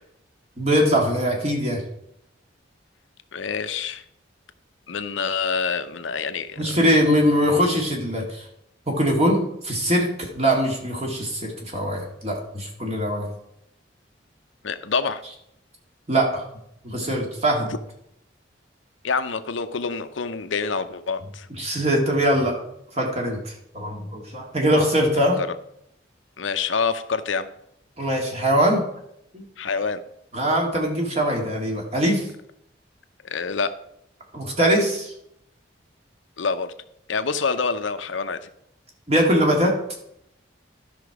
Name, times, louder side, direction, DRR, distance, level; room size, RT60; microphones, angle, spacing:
voice 1, 0.6-1.8 6.6-8.5 8.9-13.3 16.1-16.4 16.8-17.7 21.6-22.6 22.9-25.4 28.0-28.9 29.3-29.4 30.3-32.3 34.3-35.1 39.1-39.8, equal, 35° right, 1 dB, 2.0 m, -22 dB
voice 2, 3.3-4.0 4.9-6.7 14.6-15.2 19.0-21.5 25.4-25.5 26.4-27.5 29.6-30.0 33.2-33.7 36.4-36.7 37.1-38.5, left 5 dB, 90° left, 10 dB, 0.7 m, -26 dB
12.0 x 5.9 x 4.8 m, 0.77 s
head